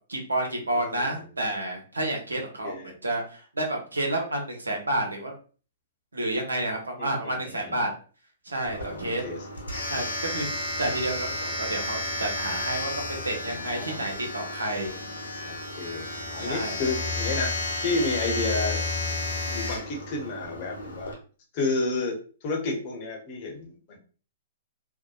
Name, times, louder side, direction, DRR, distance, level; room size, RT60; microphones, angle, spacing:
voice 1, 0.1-5.3 6.1-7.9 8.4-9.2 9.9-10.5 10.8-15.0 16.4-16.8, right 1 dB, 85° right, 1 dB, 0.7 m, -30 dB
voice 2, 0.7-1.1 2.3-2.9 7.0-7.8 8.8-9.4 13.4-14.0 15.4-17.5 17.8-18.8 19.4-21.1 21.5-24.0, left 3 dB, 40° left, 0 dB, 0.8 m, -31 dB
Domestic sounds home sounds, 8.6-21.1, left 2 dB, 85° left, 1.0 m, -32 dB
2.7 x 2.1 x 2.4 m, 0.38 s
figure-of-eight pair, 115°, 0 cm